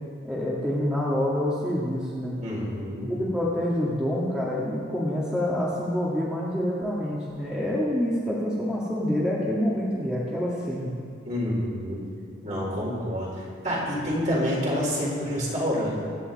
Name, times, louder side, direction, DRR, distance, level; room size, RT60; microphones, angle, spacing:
voice 1, 0.2-2.4 3.1-10.9, left 1 dB, 5° right, -7 dB, 1.7 m, -27 dB
voice 2, 2.4-3.1 11.2-12.0 12.4-15.9, equal, 40° right, -5 dB, 4.3 m, -28 dB
24.0 x 9.8 x 4.1 m, 2.3 s
head